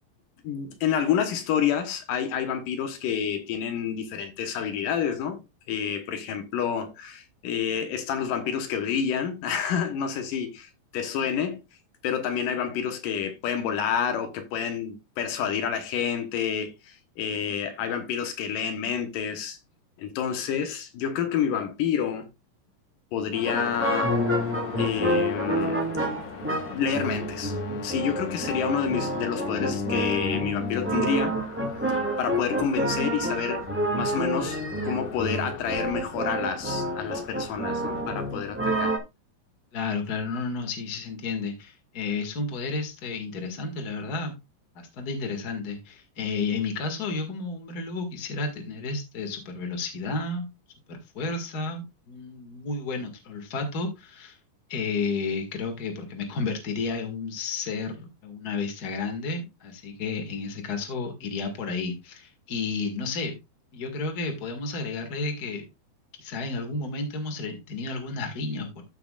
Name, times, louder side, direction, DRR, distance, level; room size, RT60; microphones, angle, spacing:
voice 1, 0.4-5.4 5.7-11.6 12.0-19.6 20.0-22.3 23.1-24.1 24.8-25.8 26.7-27.6 27.8-31.4 32.2-33.6 34.0-38.9, left 8 dB, 80° left, 2.8 m, -29 dB
sound 1, 23.3-38.0, left 5 dB, 60° left, 1.5 m, -38 dB
sound 2, 23.4-39.0, right 1 dB, 10° right, 0.8 m, -29 dB
voice 2, 39.7-44.4 44.8-50.5 50.9-54.4 54.7-63.4 63.7-65.6 66.2-68.8, left 4 dB, 35° left, 2.0 m, -32 dB
14.0 x 6.1 x 2.4 m
omnidirectional pair, 3.8 m